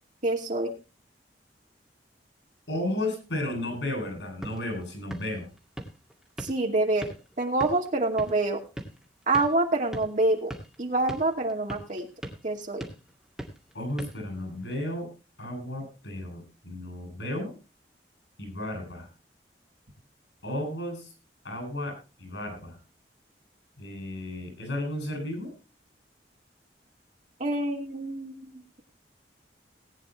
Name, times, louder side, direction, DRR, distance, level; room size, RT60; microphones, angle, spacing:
voice 1, 0.2-0.7 6.4-7.1 7.4-8.6 9.3-10.5 10.8-12.1 12.4-12.8 27.4-28.8, right 2 dB, 45° right, 1 dB, 2.4 m, -26 dB
voice 2, 2.7-5.5 13.7-15.1 15.4-17.5 18.4-19.1 20.4-21.1 21.4-22.8 23.8-25.5, left 1 dB, 90° left, 5 dB, 7.8 m, -33 dB
sound 1, 4.2-14.9, right 1 dB, 5° right, 2.2 m, -43 dB
19.0 x 9.5 x 3.2 m, 0.31 s
head